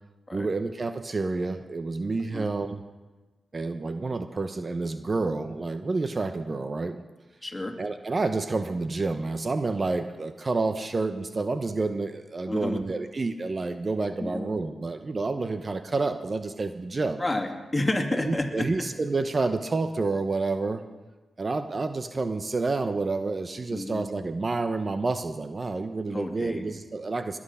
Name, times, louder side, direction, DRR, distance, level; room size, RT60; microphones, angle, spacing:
voice 1, 0.3-2.8 3.5-7.0 7.8-17.2 18.1-20.8 21.4-27.4, right 3 dB, 45° right, 9 dB, 0.9 m, -29 dB
voice 2, 7.4-7.7 12.5-12.8 14.2-14.5 17.2-18.7 23.7-24.0 26.1-26.7, left 1 dB, 20° left, 3 dB, 2.6 m, -30 dB
21.0 x 8.8 x 5.6 m, 1.2 s
supercardioid pair, 45°, 0 cm